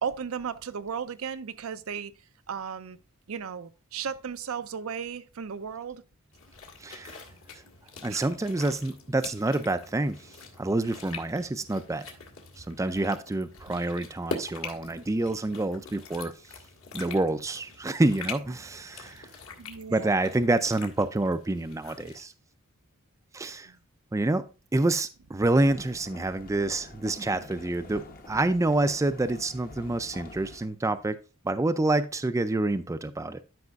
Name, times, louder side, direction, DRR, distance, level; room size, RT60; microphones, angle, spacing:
voice 1, 0.0-2.1 2.5-3.0 3.3-6.0 8.1-8.2 13.7-13.8 19.6-20.2 23.7-23.8, right 7 dB, 70° right, 0.5 m, -35 dB
sound 1, 6.3-22.2, left 4 dB, 65° left, 1.7 m, -44 dB
voice 2, 6.8-7.2 7.5-7.6 8.0-12.1 12.6-16.3 16.9-19.3 19.9-22.3 23.3-23.7 24.1-24.5 24.7-31.2 31.4-33.4, right 2 dB, 15° right, 0.4 m, -27 dB
sound 2, 25.4-30.7, left 2 dB, 40° left, 0.9 m, -47 dB
12.0 x 5.4 x 2.4 m
head